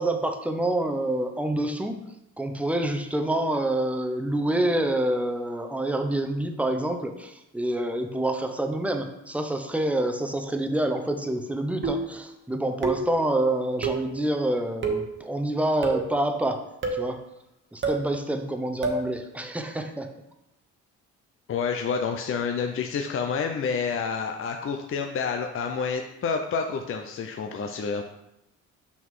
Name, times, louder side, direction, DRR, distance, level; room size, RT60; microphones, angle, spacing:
voice 1, 0.0-2.0 2.4-16.6 16.9-17.2 17.7-20.1, right 1 dB, 5° right, 5 dB, 0.8 m, -27 dB
sound 1, 11.8-12.2 12.8-13.2 13.8-14.1 14.8-15.1 15.8-16.2 16.8-17.1 17.8-18.1 18.8-19.1, right 3 dB, 40° right, 1.1 m, -28 dB
voice 2, 21.5-28.0, left 5 dB, 45° left, 4 dB, 0.6 m, -29 dB
6.0 x 5.9 x 3.7 m, 0.86 s
cardioid pair, 90°, 30 cm